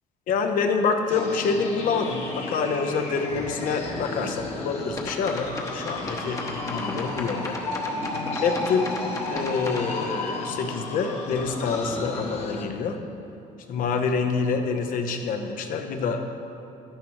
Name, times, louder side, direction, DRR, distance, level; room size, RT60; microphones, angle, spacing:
voice 1, 0.3-7.6 8.4-9.0 9.3-13.0 13.7-16.3, left 5 dB, 65° left, 5 dB, 0.9 m, -27 dB
sound 1, 1.1-12.6, left 2 dB, 45° left, 1.3 m, -33 dB
sound 2, 5.0-9.9, left 2 dB, 20° left, 1.0 m, -35 dB
11.5 x 10.0 x 3.0 m, 2.8 s
cardioid pair, 135°, 15 cm